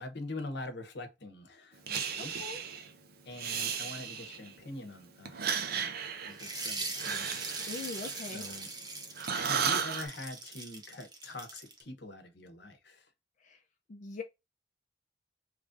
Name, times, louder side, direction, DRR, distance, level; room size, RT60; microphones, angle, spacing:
voice 1, 0.0-2.4 3.2-5.6 6.2-7.7 8.3-8.7 9.3-13.1, left 2 dB, 65° left, 0.9 m, -44 dB
Breathing, 1.9-2.9 3.3-4.6 5.2-8.8 9.2-10.1, right 7 dB, 60° right, 0.6 m, -35 dB
voice 2, 2.2-2.6 7.7-8.4 13.4-13.6 13.9-14.2, left 3 dB, 45° left, 0.5 m, -42 dB
sound 1, 6.3-11.8, right 3 dB, 25° right, 0.9 m, -41 dB
3.1 x 2.6 x 3.6 m
head